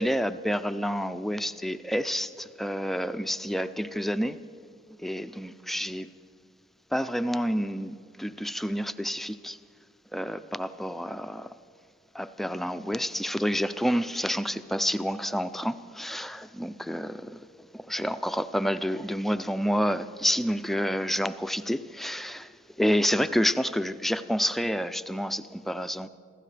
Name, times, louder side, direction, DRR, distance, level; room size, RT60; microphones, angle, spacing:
voice 1, 0.0-4.4 5.0-6.1 6.9-9.6 10.1-11.5 12.1-17.4 17.7-22.5 22.8-26.1, equal, ahead, 11 dB, 0.3 m, -29 dB
26.5 x 15.5 x 3.3 m, 2.1 s
head